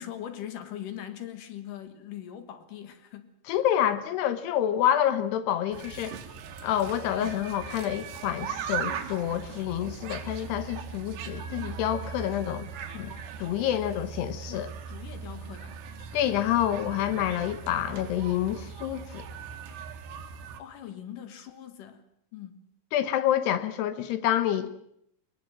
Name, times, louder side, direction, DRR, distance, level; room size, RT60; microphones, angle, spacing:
voice 1, 0.0-3.6 14.5-15.8 20.6-22.1 22.3-22.6, left 10 dB, 60° left, 9 dB, 2.8 m, -41 dB
voice 2, 3.5-6.2 6.6-12.7 12.9-13.1 13.4-14.7 16.1-19.3 22.9-24.7, left 11 dB, 75° left, 11 dB, 3.3 m, -28 dB
sound 1, 5.7-20.6, right 7 dB, 80° right, 3.7 m, -39 dB
22.0 x 20.0 x 7.7 m, 0.72 s
omnidirectional pair, 4.9 m